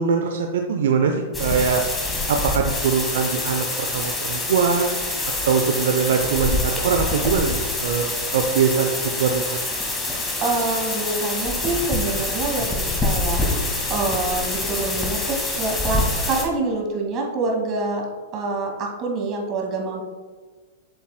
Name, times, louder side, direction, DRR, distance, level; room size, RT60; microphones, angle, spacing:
voice 1, 0.0-1.8 2.3-5.0 5.5-8.0 8.3-9.4, right 6 dB, 70° right, 4 dB, 0.6 m, -22 dB
sound 1, 1.3-16.4, left 2 dB, 15° left, 1.9 m, -26 dB
voice 2, 10.0-18.0 18.3-20.0, right 3 dB, 35° right, 1 dB, 2.0 m, -26 dB
8.0 x 7.1 x 2.2 m, 1.4 s
hypercardioid pair, 110°, 0 cm